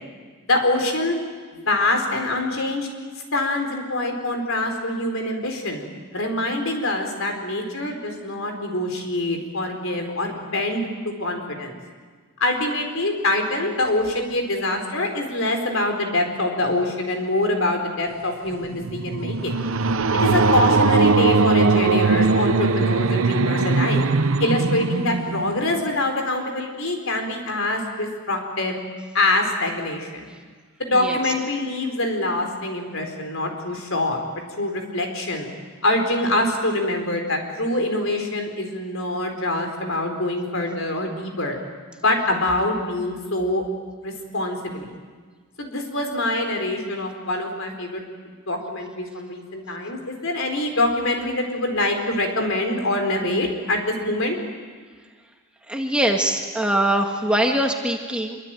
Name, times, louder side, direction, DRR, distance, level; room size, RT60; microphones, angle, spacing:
voice 1, 0.4-1.2 1.7-2.9 3.3-5.8 6.1-11.8 12.4-19.6 20.1-24.0 24.4-28.7 29.1-30.3 30.8-34.2 34.6-35.5 35.8-41.6 42.0-43.6 44.0-44.9 45.6-48.0 48.5-54.4, left 1 dB, 65° left, 4 dB, 4.7 m, -24 dB
sound 1, 18.5-25.9, right 3 dB, 70° right, 0.8 m, -20 dB
voice 2, 30.9-31.3 55.7-58.4, right 1 dB, 5° right, 2 dB, 1.8 m, -23 dB
25.5 x 24.0 x 9.2 m, 1.5 s
head